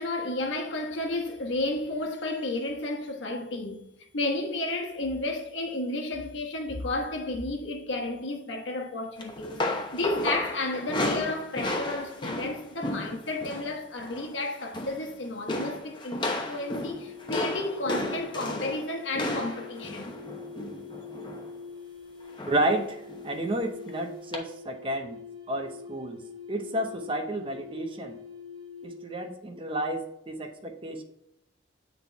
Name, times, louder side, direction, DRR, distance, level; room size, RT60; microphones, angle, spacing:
voice 1, 0.0-3.9 4.1-20.1, left 2 dB, 75° left, 1.2 m, -32 dB
sound 1, 9.2-13.7 14.0-14.3 14.6-15.1 15.5-21.5 22.4-22.7 23.1-23.3 24.3-24.4, left 2 dB, 25° left, 0.9 m, -33 dB
sound 2, 16.5-29.2, left 4 dB, 55° right, 1.5 m, -45 dB
voice 2, 22.5-25.2 25.5-26.2 26.5-28.2 28.8-31.0, right 1 dB, 25° right, 0.7 m, -31 dB
8.5 x 4.0 x 3.5 m
head